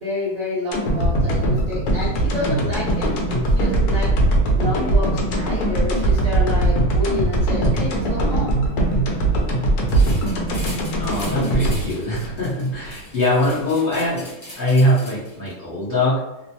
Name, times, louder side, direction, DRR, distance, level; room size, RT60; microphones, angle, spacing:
voice 1, 0.0-4.1 4.5-8.6, left 1 dB, 50° right, -8 dB, 0.8 m, -28 dB
sound 1, 0.7-12.9 13.3-13.4, right 1 dB, 80° left, 1.1 m, -20 dB
sound 2, 9.9-15.5, left 1 dB, 30° left, 0.4 m, -40 dB
voice 2, 11.0-16.1, left 1 dB, 45° left, -10 dB, 0.8 m, -22 dB
2.9 x 2.0 x 2.7 m, 1.0 s
omnidirectional pair, 1.6 m